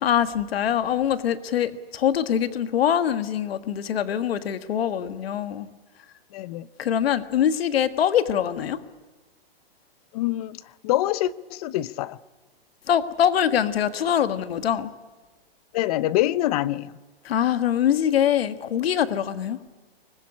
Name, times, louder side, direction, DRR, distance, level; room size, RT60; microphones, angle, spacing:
voice 1, 0.0-5.7 6.8-8.8 12.9-14.9 17.2-19.6, left 9 dB, 75° left, 1.7 m, -23 dB
voice 2, 6.3-6.7 10.1-12.2 15.7-16.9, left 15 dB, 40° left, 0.8 m, -25 dB
25.0 x 21.0 x 9.7 m
hypercardioid pair, 150°, 31 cm